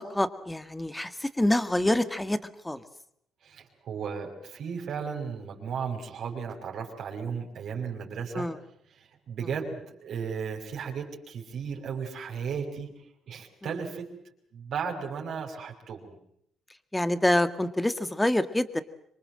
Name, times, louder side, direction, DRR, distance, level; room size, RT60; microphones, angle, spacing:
voice 1, 0.0-2.8 8.3-8.6 13.6-13.7 16.9-18.8, left 1 dB, 10° left, 12 dB, 1.9 m, -26 dB
voice 2, 3.4-8.5 9.0-14.1 14.5-16.2, right 6 dB, 65° right, 2 dB, 5.9 m, -35 dB
26.0 x 23.0 x 7.8 m, 0.72 s
cardioid pair, 90°, 0 cm